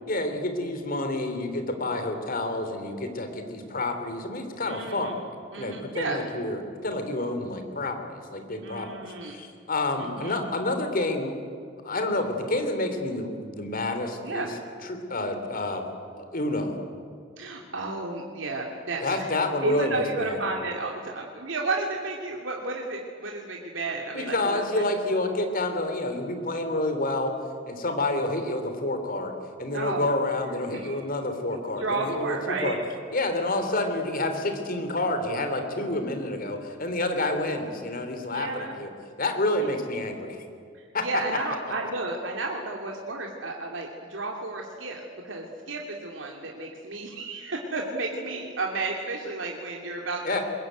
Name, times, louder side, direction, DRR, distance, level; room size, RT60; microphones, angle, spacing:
voice 1, 0.1-5.1 5.6-8.9 9.3-11.3 11.8-14.5 14.9-15.9 16.2-16.8 19.0-20.4 24.1-27.3 27.7-32.4 32.6-32.8 33.1-38.9 39.2-40.4 40.9-41.1 50.2-50.4, left 2 dB, 50° left, 6 dB, 3.4 m, -29 dB
voice 2, 4.7-5.1 5.5-6.2 8.6-9.4 10.0-10.4 14.2-14.5 17.4-19.3 19.6-24.8 29.7-31.1 31.8-32.8 38.3-38.7 39.6-39.7 40.7-50.4, right 3 dB, 85° right, 0 dB, 2.6 m, -32 dB
22.5 x 21.5 x 9.4 m, 2.3 s
head